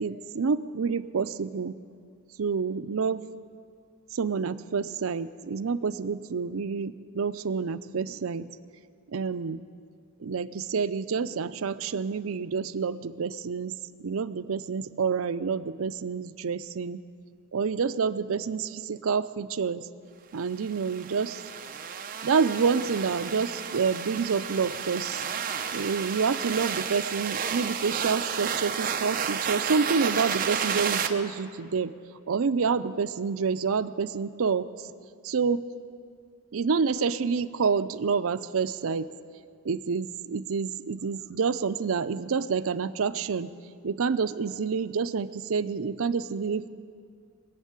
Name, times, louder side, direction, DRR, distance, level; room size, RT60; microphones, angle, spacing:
voice 1, 0.0-1.8 2.4-3.2 4.1-8.5 9.1-9.6 10.2-17.0 17.5-19.9 20.3-21.4 22.2-25.3 25.7-31.9 32.3-34.7 35.2-35.6 36.5-39.1 39.6-43.5 43.8-46.7, right 5 dB, 80° right, 13 dB, 0.5 m, -28 dB
sound 1, 20.6-31.1, right 7 dB, 40° right, 0.8 m, -32 dB
21.0 x 7.4 x 8.7 m, 2.2 s
head